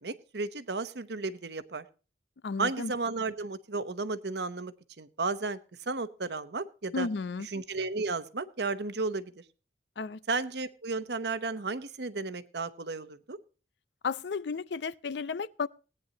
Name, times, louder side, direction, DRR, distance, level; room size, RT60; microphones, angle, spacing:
voice 1, 0.0-1.8 2.6-5.6 5.9-7.1 7.4-9.3 10.3-13.4, right 3 dB, 70° right, 0.9 m, -33 dB
voice 2, 2.4-2.9 6.9-7.5 10.0-10.2 14.0-15.7, left 4 dB, 75° left, 0.5 m, -33 dB
18.5 x 9.6 x 2.9 m
head